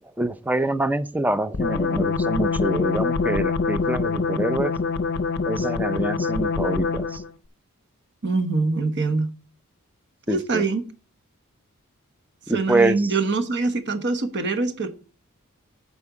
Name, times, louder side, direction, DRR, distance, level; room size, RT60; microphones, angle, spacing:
voice 1, 0.2-4.7 5.5-7.2 10.3-10.6 12.5-13.1, right 2 dB, 5° right, 12 dB, 0.4 m, -25 dB
sound 1, 1.5-7.3, left 4 dB, 50° left, 0.6 m, -24 dB
voice 2, 8.2-9.3 10.3-10.8 12.5-14.9, right 3 dB, 55° right, 8 dB, 1.1 m, -24 dB
8.5 x 4.4 x 6.9 m, 0.39 s
head